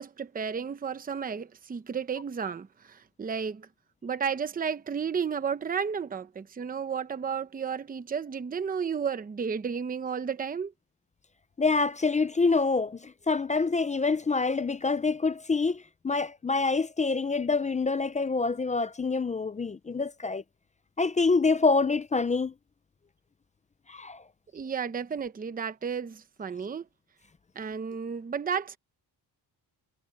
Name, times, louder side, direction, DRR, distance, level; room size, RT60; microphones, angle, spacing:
voice 1, 0.0-3.7 4.0-10.7 24.5-26.8 27.6-28.8, right 6 dB, 20° right, 0.8 m, -32 dB
voice 2, 11.6-20.4 21.0-22.5 23.9-24.2, left 4 dB, 20° left, 0.4 m, -26 dB
cardioid pair, 155°, 39 cm